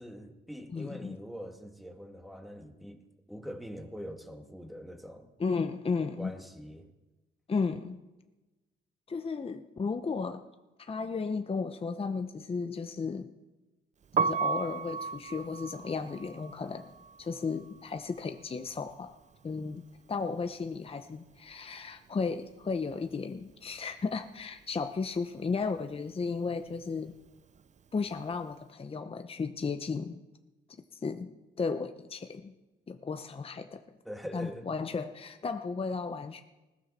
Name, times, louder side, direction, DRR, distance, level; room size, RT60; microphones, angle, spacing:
voice 1, 0.0-5.3 6.2-6.9 34.0-34.7, equal, ahead, 4 dB, 2.0 m, -43 dB
voice 2, 0.7-1.2 5.4-6.3 7.5-8.0 9.1-10.4 10.8-13.3 14.2-19.2 19.4-19.8 20.1-27.1 27.9-30.2 30.9-31.3 31.6-32.5 32.9-33.8 34.3-36.4, left 4 dB, 30° left, 7 dB, 0.8 m, -34 dB
Piano, 14.0-20.0 20.2-21.8 22.1-28.5, right 5 dB, 35° right, 0.5 m, -36 dB
20.0 x 15.5 x 4.2 m, 1.1 s
cardioid pair, 95°, 20 cm